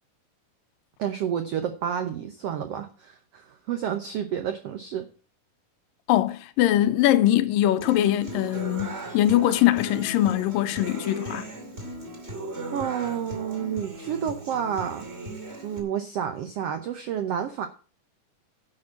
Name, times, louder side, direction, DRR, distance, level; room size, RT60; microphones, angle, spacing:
voice 1, 1.0-5.1 12.7-15.1 15.6-17.7, right 9 dB, 85° right, 1.3 m, -30 dB
voice 2, 6.1-11.5, left 13 dB, 85° left, 2.4 m, -22 dB
Human voice / Acoustic guitar, 7.8-15.8, right 1 dB, 20° right, 2.3 m, -37 dB
10.5 x 5.1 x 8.3 m
omnidirectional pair, 3.9 m